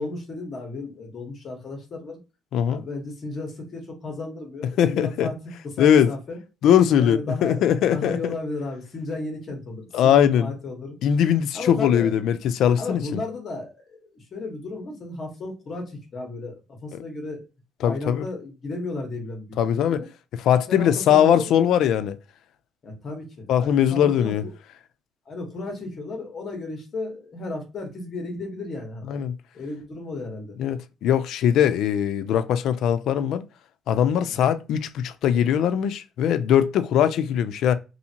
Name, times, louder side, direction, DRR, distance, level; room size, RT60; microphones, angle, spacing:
voice 1, 0.0-2.2 2.6-6.4 6.7-11.0 11.5-12.1 12.7-17.4 17.8-20.1 20.7-21.5 22.8-24.5 25.2-29.1 29.5-30.6, left 2 dB, 35° left, 1.1 m, -34 dB
voice 2, 4.8-5.3 5.8-6.1 6.6-8.4 9.9-10.5 11.0-13.2 17.8-18.2 19.6-20.0 20.5-22.2 23.5-24.4 29.1-29.3 30.6-33.4 33.9-37.7, left 9 dB, 65° left, 0.3 m, -20 dB
2.7 x 2.5 x 2.8 m
cardioid pair, 140°, 0 cm